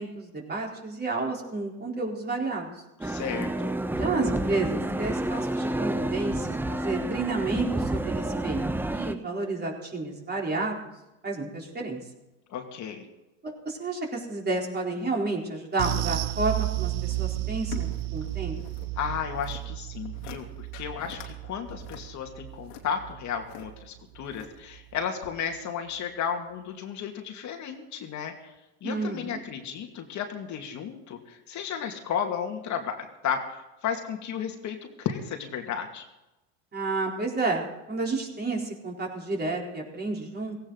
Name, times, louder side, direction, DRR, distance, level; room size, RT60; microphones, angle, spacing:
voice 1, 0.0-2.7 4.0-8.6 8.9-10.8 11.2-12.0 13.4-18.6 28.8-29.3 36.7-40.6, right 3 dB, 25° right, -1 dB, 4.1 m, -31 dB
voice 2, 3.0-3.7 12.5-13.1 19.0-28.5 28.8-33.6 33.8-36.0, left 7 dB, 45° left, 3 dB, 2.3 m, -33 dB
sound 1, 3.0-9.2, right 1 dB, 5° right, 0.8 m, -29 dB
sound 2, 15.8-24.5 24.7-25.0 25.3-25.4, right 19 dB, 60° right, 0.8 m, -33 dB
sound 3, 17.0-18.9 19.2-19.6 20.0-20.4 20.7-21.3 21.7-23.6 24.2-24.8 25.2-25.3, left 8 dB, 75° left, 2.8 m, -44 dB
17.0 x 16.5 x 4.0 m, 0.98 s
supercardioid pair, 100°, 39 cm